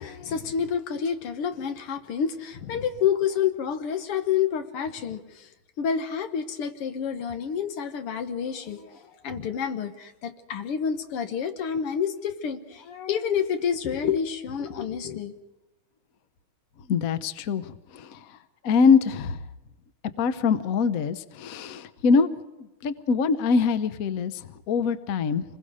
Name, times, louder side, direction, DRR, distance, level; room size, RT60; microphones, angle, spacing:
voice 1, 0.0-5.5 5.8-15.3, left 7 dB, 85° left, 8 dB, 2.2 m, -29 dB
voice 2, 16.9-18.3 18.6-19.4 20.2-22.3 22.8-25.4, left 5 dB, 55° left, 12 dB, 1.1 m, -23 dB
27.5 x 21.0 x 5.0 m, 1.0 s
omnidirectional pair, 2.4 m